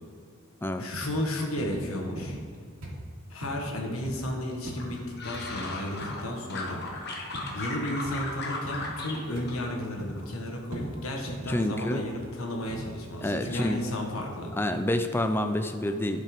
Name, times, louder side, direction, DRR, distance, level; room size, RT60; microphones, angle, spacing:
voice 1, 0.8-2.4 3.3-6.9 7.5-14.5, left 1 dB, 85° left, 1 dB, 1.5 m, -33 dB
sound 1, 0.9-1.2 1.6-1.9 2.2-2.6 2.8-3.0 3.4-3.6 4.0-4.3 4.7-4.9 5.3-5.5 6.0-6.2 6.7-6.9 7.3-7.6 8.0-8.2 8.6-8.9 9.4-9.6 10.0-10.3 10.7-10.9 11.3-11.5 12.0-12.3 12.7-12.9 13.4-13.7 14.2-14.3, right 1 dB, 80° right, 2.3 m, -40 dB
sound 2, 4.8-6.2 6.5-9.2 9.5-10.2 10.6-11.0, left 2 dB, 50° left, 1.3 m, -36 dB
voice 2, 11.5-12.0 13.2-13.8 14.6-16.2, left 1 dB, 10° left, 7 dB, 0.4 m, -28 dB
10.5 x 5.6 x 5.2 m, 2.3 s
head